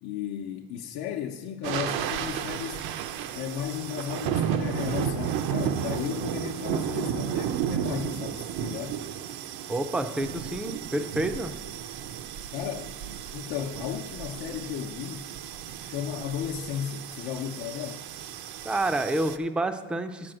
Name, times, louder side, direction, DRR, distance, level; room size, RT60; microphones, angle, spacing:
voice 1, 0.0-2.9 3.3-9.0 12.5-12.9 13.3-15.3 15.8-18.0, left 9 dB, 80° left, 1 dB, 0.8 m, -34 dB
sound 1, 1.6-19.4, right 9 dB, 70° right, 0.7 m, -33 dB
voice 2, 9.7-11.5 18.6-20.3, right 1 dB, 5° right, 8 dB, 0.3 m, -29 dB
8.6 x 6.1 x 7.6 m, 1.2 s
cardioid pair, 145°, 38 cm